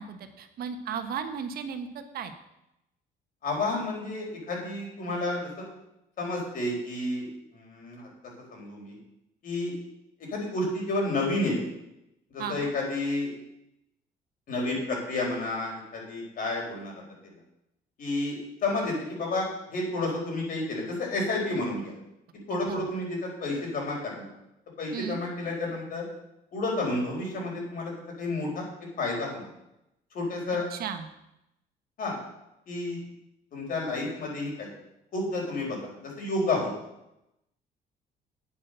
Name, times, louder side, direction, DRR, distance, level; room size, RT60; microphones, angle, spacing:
voice 1, 0.0-2.3 12.4-12.7 22.5-22.8 24.9-25.2 30.7-31.1, right 7 dB, 65° right, 8 dB, 1.3 m, -35 dB
voice 2, 3.4-5.7 6.2-8.1 8.5-9.0 9.4-9.7 10.2-11.6 12.3-13.3 14.5-17.0 18.0-21.9 22.5-24.3 24.8-26.1 26.5-28.7 29.0-29.5 30.1-30.7 32.0-32.2 32.7-33.0 33.5-34.7 35.1-36.7, left 2 dB, 55° left, -1 dB, 4.9 m, -31 dB
9.0 x 8.6 x 6.7 m, 0.86 s
cardioid pair, 110°, 17 cm